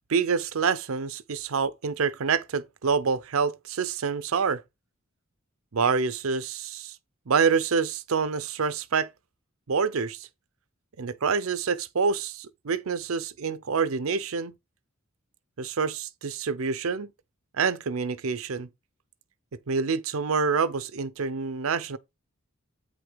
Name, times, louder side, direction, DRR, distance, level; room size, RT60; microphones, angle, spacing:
voice 1, 0.1-4.6 5.7-7.0 7.3-9.1 9.7-10.3 11.0-14.5 15.6-17.1 17.5-18.7 19.7-22.0, right 5 dB, 80° right, 0.6 m, -27 dB
8.6 x 3.6 x 5.0 m
head